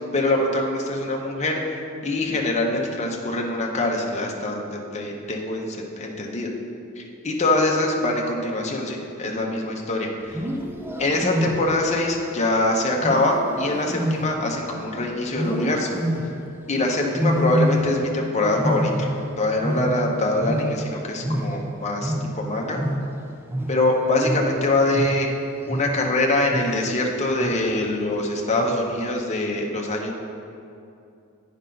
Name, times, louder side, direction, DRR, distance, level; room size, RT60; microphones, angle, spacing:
voice 1, 0.1-1.6 2.0-6.5 7.0-10.4 11.0-15.9 16.7-19.1 19.4-22.8 23.7-25.3 25.7-30.1, left 2 dB, 30° left, 0 dB, 0.8 m, -24 dB
Wild animals, 10.2-11.9 13.0-14.9 15.3-16.5 17.1-18.2 18.5-21.0 21.2-26.1 26.5-27.0 27.4-27.8 28.5-29.0, equal, 10° right, 0.4 m, -27 dB
8.9 x 5.5 x 3.9 m, 2.6 s
head